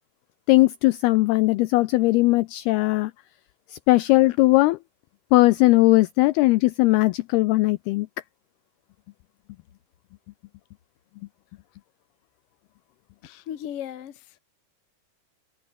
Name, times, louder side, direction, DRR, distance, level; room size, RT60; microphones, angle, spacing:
voice 1, 0.5-3.1 3.7-4.8 5.3-8.1, left 20 dB, 85° left, 2.2 m, -19 dB
voice 2, 13.2-14.4, left 10 dB, 55° left, 1.6 m, -36 dB
omnidirectional pair, 5.3 m